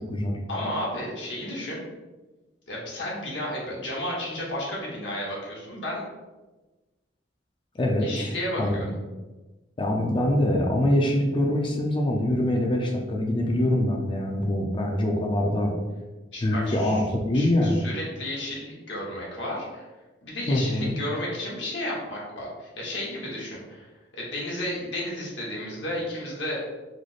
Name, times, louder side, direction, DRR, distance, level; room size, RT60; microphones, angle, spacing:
voice 1, 0.5-1.8 2.7-6.0 8.0-8.8 16.3-17.0 17.3-19.8 20.2-23.9 24.1-26.6, left 1 dB, 75° left, -4 dB, 1.0 m, -32 dB
voice 2, 7.8-8.3 8.6-8.8 9.8-15.7 16.4-17.9 20.5-21.0, left 1 dB, 25° left, 0 dB, 0.4 m, -24 dB
3.2 x 2.0 x 3.9 m, 1.2 s
head